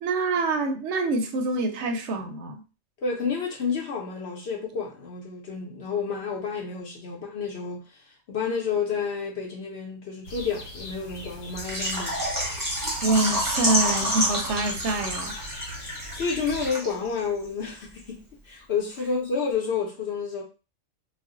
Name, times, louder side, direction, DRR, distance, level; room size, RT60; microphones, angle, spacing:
voice 1, 0.0-2.6 13.0-15.4, right 2 dB, 65° right, 0.8 m, -26 dB
voice 2, 3.0-7.8 8.3-12.2 16.1-20.4, left 5 dB, 60° left, 0.8 m, -30 dB
sound 1, 10.2-16.7, equal, 75° left, 1.1 m, -40 dB
Water / Liquid, 11.6-17.2 17.4-17.5 18.0-18.1, equal, 20° right, 0.6 m, -28 dB
2.4 x 2.1 x 3.6 m
omnidirectional pair, 1.4 m